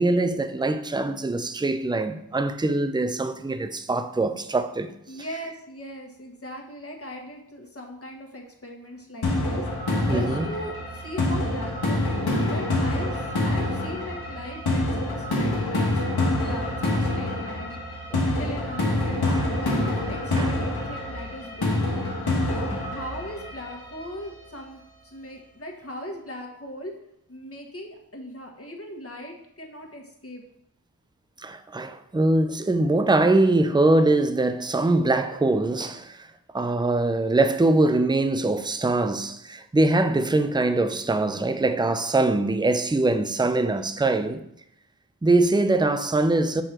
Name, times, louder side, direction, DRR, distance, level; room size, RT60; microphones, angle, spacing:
voice 1, 0.0-4.9 10.1-10.5 18.1-18.2 19.3-19.4 20.4-20.5 31.4-36.3 36.5-44.4 45.2-46.6, right 2 dB, 10° right, 0.5 m, -23 dB
voice 2, 5.1-9.6 10.1-17.7 18.2-22.1 22.4-26.9 27.3-30.4, equal, 40° left, 1.6 m, -39 dB
sound 1, 9.2-24.2, left 2 dB, 85° left, 1.5 m, -26 dB
6.3 x 4.7 x 4.4 m
cardioid pair, 40°, 37 cm